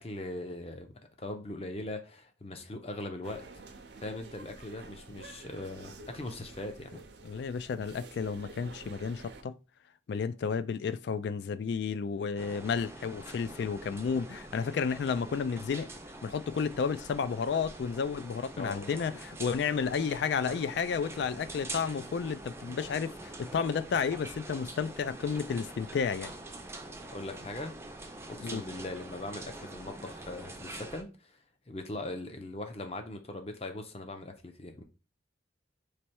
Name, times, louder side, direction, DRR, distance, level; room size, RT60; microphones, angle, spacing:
voice 1, 0.0-7.0 18.6-19.0 27.1-27.7 28.3-31.4 31.7-34.8, left 2 dB, 30° left, 0.6 m, -40 dB
sound 1, 3.2-9.4, right 3 dB, 60° right, 0.6 m, -50 dB
voice 2, 7.2-9.6 10.1-15.9 16.2-26.3 28.4-28.6, left 6 dB, 60° left, 0.3 m, -32 dB
sound 2, 12.4-31.0, right 2 dB, 15° right, 0.5 m, -45 dB
3.3 x 3.0 x 4.4 m
head